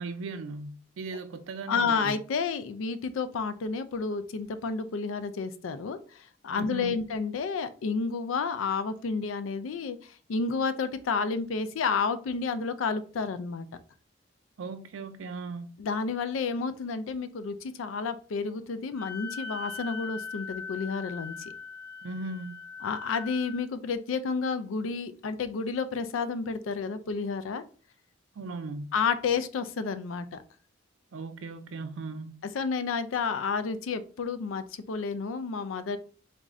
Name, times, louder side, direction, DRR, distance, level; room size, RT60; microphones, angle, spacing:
voice 1, 0.0-2.2 6.5-7.0 14.6-15.7 22.0-22.6 28.4-28.9 31.1-32.4, right 3 dB, 85° right, 0.4 m, -38 dB
voice 2, 1.7-10.0 10.3-13.7 15.8-21.3 22.8-27.6 28.9-30.4 32.5-36.0, left 5 dB, 85° left, 0.4 m, -30 dB
Wind instrument woodwind instrument, 18.9-23.6, left 5 dB, 5° left, 1.0 m, -40 dB
3.6 x 2.5 x 3.1 m
head